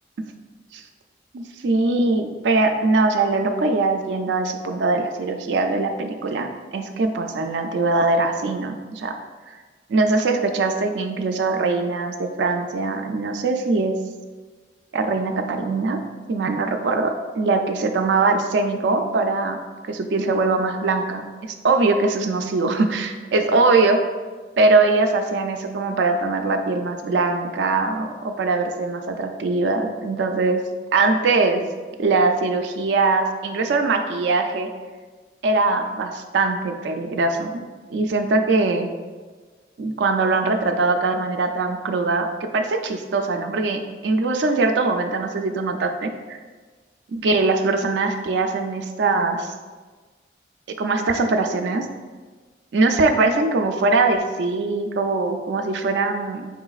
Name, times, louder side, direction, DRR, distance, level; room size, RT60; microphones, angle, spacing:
voice 1, 1.3-9.1 9.5-9.6 9.9-14.0 14.9-16.0 16.3-19.6 19.9-21.2 21.6-24.0 24.6-30.6 30.9-31.6 32.0-34.7 35.4-37.6 37.9-38.9 39.8-46.4 47.1-49.5 50.8-51.9 52.7-56.5, right 3 dB, 85° right, 5 dB, 0.4 m, -21 dB
4.8 x 3.7 x 2.3 m, 1.4 s
head